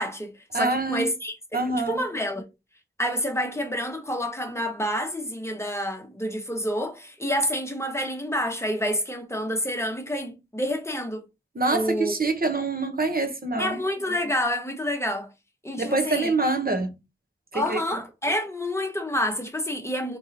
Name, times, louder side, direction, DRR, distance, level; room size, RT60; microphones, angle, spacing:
voice 1, 0.0-2.4 3.0-11.2 11.7-12.1 13.6-15.3 15.6-16.3 17.5-20.2, equal, 15° left, 1.0 m, -28 dB
voice 2, 0.5-1.1 1.5-2.0 11.5-13.8 15.8-16.9 17.5-17.8, right 3 dB, 50° right, 1.0 m, -25 dB
3.6 x 3.1 x 2.8 m
wide cardioid pair, 55°, 20 cm